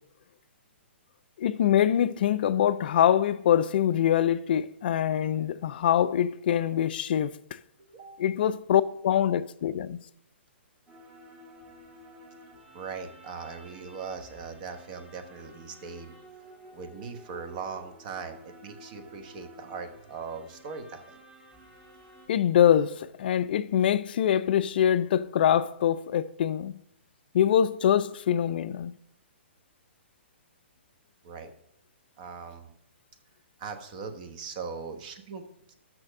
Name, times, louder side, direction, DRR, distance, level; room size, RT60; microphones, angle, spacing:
voice 1, 1.4-7.6 8.2-10.0 22.3-26.8 27.3-28.9, left 10 dB, 55° left, 0.3 m, -24 dB
voice 2, 7.9-8.3 12.7-16.1 16.7-21.2 31.2-31.5 32.2-32.7 33.6-35.8, right 5 dB, 40° right, 1.1 m, -40 dB
sound 1, 10.9-22.3, right 1 dB, 15° right, 1.7 m, -52 dB
6.3 x 6.1 x 6.4 m
figure-of-eight pair, 125°, 6 cm